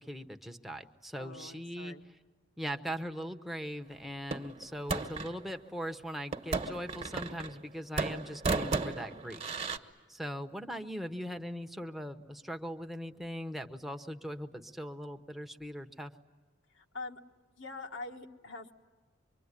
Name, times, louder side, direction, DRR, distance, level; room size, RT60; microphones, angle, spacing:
voice 1, 0.0-1.9 2.6-9.6 10.1-16.1, equal, ahead, 4 dB, 1.0 m, -40 dB
voice 2, 1.2-2.1 16.7-17.2 17.6-18.7, left 3 dB, 70° left, 4 dB, 1.7 m, -44 dB
sound 1, 4.3-5.4 6.3-7.7 8.0-9.8, right 3 dB, 35° right, 1.3 m, -34 dB
25.0 x 24.0 x 9.8 m, 1.3 s
head